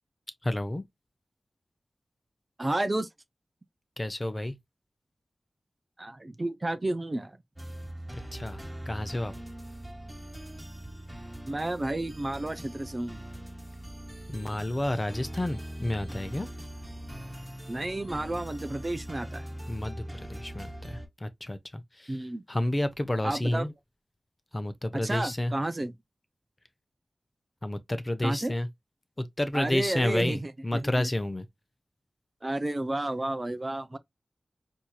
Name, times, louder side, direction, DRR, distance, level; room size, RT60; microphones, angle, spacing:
voice 1, 0.4-0.8 4.0-4.6 8.3-9.3 14.3-16.5 19.7-20.0 20.3-22.2 22.5-23.7 24.5-25.5 27.6-28.7 29.2-31.5, left 1 dB, 25° left, 0.7 m, -30 dB
voice 2, 2.6-3.1 6.0-7.4 11.5-13.2 17.7-19.4 22.1-22.4 23.2-23.7 24.9-25.9 28.2-28.5 29.5-31.1 32.4-34.0, right 1 dB, 35° right, 0.5 m, -31 dB
sound 1, 7.6-21.1, right 1 dB, 15° right, 1.3 m, -41 dB
4.4 x 2.7 x 2.3 m
cardioid pair, 55°, 0 cm